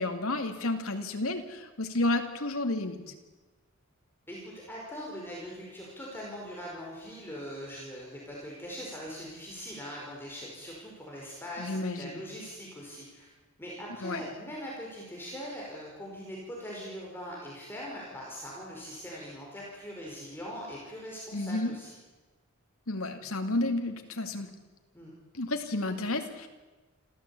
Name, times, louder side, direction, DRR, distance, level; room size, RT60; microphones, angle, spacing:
voice 1, 0.0-3.0 11.6-12.2 14.0-14.2 21.3-21.7 22.9-24.5 25.3-26.5, left 2 dB, 75° left, 5 dB, 2.4 m, -31 dB
voice 2, 4.3-13.3 13.6-21.9 24.9-25.1, equal, 10° left, -4 dB, 5.0 m, -41 dB
27.0 x 14.5 x 8.5 m, 1.2 s
head